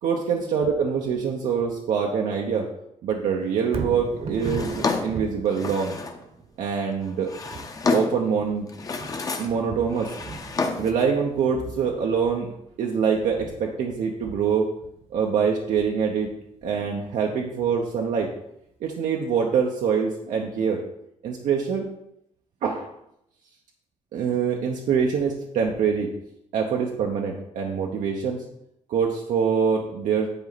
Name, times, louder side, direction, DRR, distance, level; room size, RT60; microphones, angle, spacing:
voice 1, 0.0-2.7 3.0-6.0 6.6-7.3 7.9-8.6 9.4-10.1 10.8-12.5 12.8-14.7 15.1-16.3 16.6-18.3 18.8-20.8 21.2-21.9 22.6-22.9 24.1-26.1 26.5-28.4 28.9-30.3, right 6 dB, 90° right, 0 dB, 0.9 m, -24 dB
Thunder, 3.6-17.8 18.3-18.4, right 4 dB, 55° right, 1.0 m, -39 dB
Drawer open or close, 4.4-6.2 7.0-8.3 8.7-9.6 9.9-11.0, left 4 dB, 30° left, 0.7 m, -29 dB
10.5 x 4.3 x 4.0 m, 0.78 s
cardioid pair, 145°, 13 cm